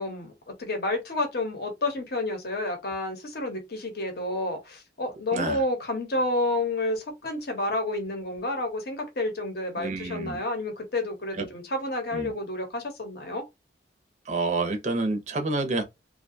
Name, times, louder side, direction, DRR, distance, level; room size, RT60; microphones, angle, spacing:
voice 1, 0.0-13.4, left 2 dB, 55° left, 0.8 m, -30 dB
voice 2, 9.8-10.4 11.4-11.5 12.1-12.3 14.3-15.8, right 3 dB, 40° right, 0.5 m, -28 dB
2.4 x 2.2 x 2.6 m
head